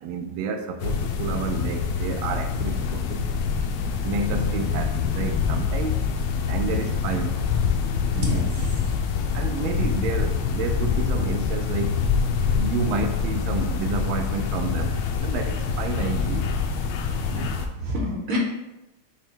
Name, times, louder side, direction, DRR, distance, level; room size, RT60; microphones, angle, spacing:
voice 1, 0.0-3.3 4.0-6.0 6.5-7.4 9.3-12.0 12.6-16.5, right 5 dB, 85° right, 6 dB, 1.4 m, -30 dB
sound 1, 0.8-17.7, left 6 dB, 85° left, 1.4 m, -25 dB
voice 2, 8.1-8.8 17.3-18.4, right 1 dB, 55° right, -2 dB, 1.1 m, -29 dB
5.6 x 2.2 x 4.3 m, 0.94 s
omnidirectional pair, 2.2 m